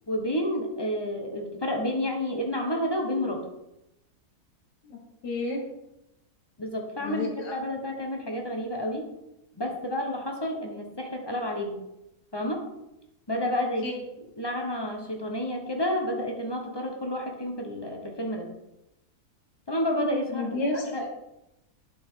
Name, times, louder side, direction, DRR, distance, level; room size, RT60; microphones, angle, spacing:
voice 1, 0.1-3.4 6.6-9.0 9.6-11.8 12.3-12.7 13.3-13.9 14.4-18.5 19.7-20.6 20.9-21.1, left 1 dB, 20° left, 2 dB, 0.8 m, -30 dB
voice 2, 5.2-5.6 7.0-7.5 13.8-13.9 20.3-21.1, left 2 dB, 80° left, 0 dB, 1.9 m, -31 dB
10.5 x 4.9 x 3.7 m, 0.90 s
omnidirectional pair, 1.7 m